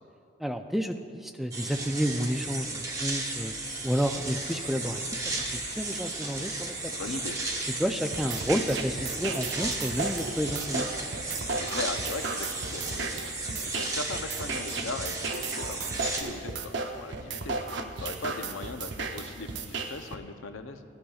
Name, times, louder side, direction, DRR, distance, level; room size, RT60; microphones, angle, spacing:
voice 1, 0.4-3.5 3.8-6.7 7.1-7.2 7.8-10.8, equal, ahead, 6 dB, 0.3 m, -30 dB
sound 1, 1.5-16.2, right 2 dB, 15° right, 1.0 m, -34 dB
sound 2, 3.6-11.5, left 1 dB, 15° left, 0.7 m, -52 dB
voice 2, 6.9-7.4 11.5-17.6 18.0-20.8, left 3 dB, 90° left, 8 dB, 0.7 m, -39 dB
sound 3, 8.1-20.1, right 3 dB, 60° right, 0.7 m, -35 dB
16.5 x 11.5 x 2.3 m, 2.3 s
head